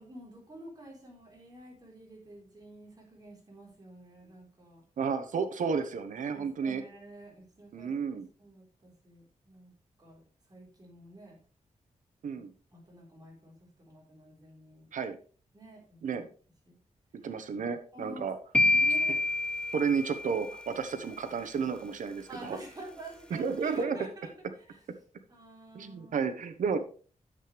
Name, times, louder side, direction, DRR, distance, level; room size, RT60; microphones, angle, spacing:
voice 1, 0.0-4.8 6.3-9.7 10.0-10.2 10.5-11.4 12.7-14.9 15.5-16.2 16.7-16.8 17.9-19.2 22.3-24.3 24.7-24.8 25.3-26.3, right 1 dB, 30° right, -2 dB, 4.1 m, -49 dB
voice 2, 5.0-6.8 7.7-8.3 12.2-12.5 14.9-15.1 16.0-16.2 17.2-18.4 19.7-22.6 23.3-24.0 25.7-26.8, right 6 dB, 85° right, 10 dB, 1.1 m, -32 dB
sound 1, 18.5-20.7, left 2 dB, 5° left, 0.4 m, -27 dB
10.0 x 7.8 x 3.3 m, 0.40 s
wide cardioid pair, 145°, 13 cm